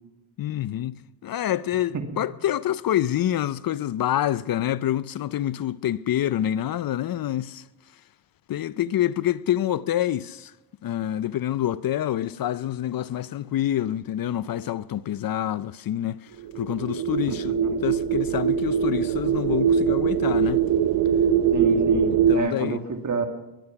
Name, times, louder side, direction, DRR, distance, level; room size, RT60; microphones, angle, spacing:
voice 1, 0.4-7.6 8.5-10.5 10.8-16.3 16.6-20.6 22.3-22.8, left 12 dB, 50° left, 0.6 m, -27 dB
sound 1, 16.4-22.3, right 7 dB, 55° right, 0.9 m, -22 dB
voice 2, 21.5-23.2, right 5 dB, 40° right, 2.0 m, -29 dB
20.5 x 11.5 x 5.8 m
supercardioid pair, 60°, 46 cm